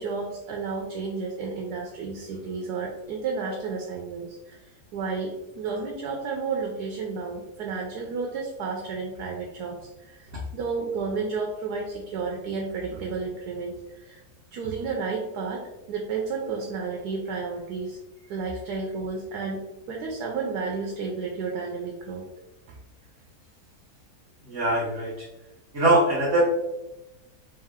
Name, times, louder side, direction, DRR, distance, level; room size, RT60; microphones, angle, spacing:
voice 1, 0.0-14.2 14.5-18.0 18.3-19.6 19.9-22.2, right 4 dB, 85° right, 0 dB, 1.2 m, -32 dB
voice 2, 24.5-25.1 25.7-26.4, right 1 dB, 50° right, -6 dB, 1.1 m, -22 dB
3.3 x 3.2 x 3.6 m, 0.98 s
omnidirectional pair, 1.7 m